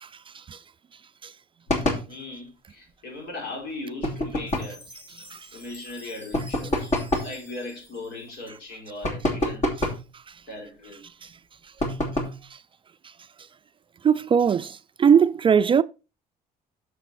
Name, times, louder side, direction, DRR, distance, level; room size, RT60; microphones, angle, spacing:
sound 1, 1.7-2.1 4.0-4.8 6.3-7.4 9.0-10.1 11.8-12.4, left 1 dB, 45° left, 2.7 m, -26 dB
voice 1, 2.0-4.8 5.5-6.9 7.2-9.7 10.5-11.1, left 2 dB, 75° left, 4.6 m, -38 dB
Chime, 4.5-8.9, equal, 15° left, 5.0 m, -49 dB
voice 2, 14.0-15.8, right 7 dB, 30° right, 0.4 m, -20 dB
7.0 x 6.9 x 4.1 m
cardioid pair, 110°, 17 cm